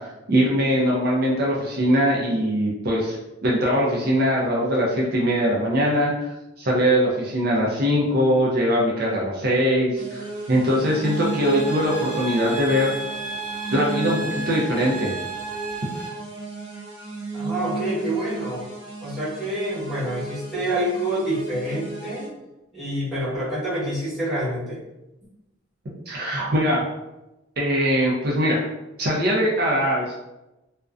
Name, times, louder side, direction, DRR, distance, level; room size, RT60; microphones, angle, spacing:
voice 1, 0.0-3.2 3.4-13.0 13.7-15.1 26.1-26.8 27.6-28.7 29.0-30.2, equal, 55° right, -4 dB, 0.5 m, -22 dB
sound 1, 10.0-22.3, right 3 dB, 80° right, 0.9 m, -34 dB
sound 2, 11.0-16.1, right 3 dB, 45° left, 0.7 m, -33 dB
voice 2, 17.3-18.7 19.0-22.3 22.7-24.8, right 1 dB, ahead, -11 dB, 1.1 m, -27 dB
2.5 x 2.1 x 2.3 m, 0.97 s
head